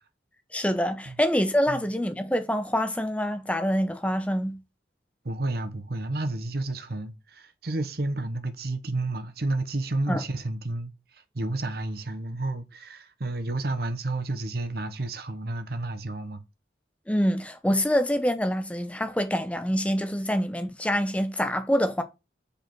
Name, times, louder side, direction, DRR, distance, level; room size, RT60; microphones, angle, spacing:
voice 1, 0.5-4.6 10.1-10.2 17.1-22.0, equal, 5° left, 0.7 m, -26 dB
voice 2, 5.2-16.4, right 2 dB, 55° right, 0.9 m, -31 dB
5.1 x 4.8 x 5.9 m
head